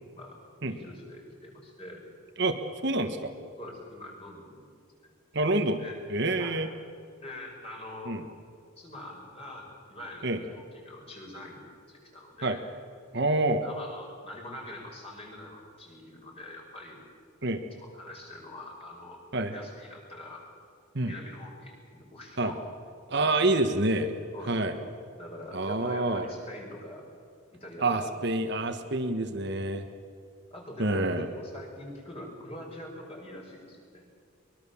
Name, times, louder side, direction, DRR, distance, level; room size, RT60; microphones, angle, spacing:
voice 1, 0.7-2.0 3.6-4.7 5.0-5.1 5.8-6.0 6.4-6.6 7.2-8.1 8.8-11.6 11.9-12.6 13.6-17.0 17.8-19.2 19.5-20.4 21.0-22.7 24.3-24.9 25.2-27.0 27.5-28.1 30.5-34.0, left 1 dB, 25° left, 0 dB, 5.5 m, -44 dB
voice 2, 2.8-3.3 5.3-5.8 6.1-6.7 8.1-8.2 10.2-10.4 12.4-12.6 13.1-13.6 17.4-17.6 19.3-19.5 20.9-21.1 22.4-22.5 23.1-24.1 24.5-24.7 25.5-26.3 27.8-29.9 30.8-31.3, right 2 dB, 55° right, 6 dB, 1.4 m, -27 dB
23.5 x 22.0 x 7.2 m, 2.3 s
head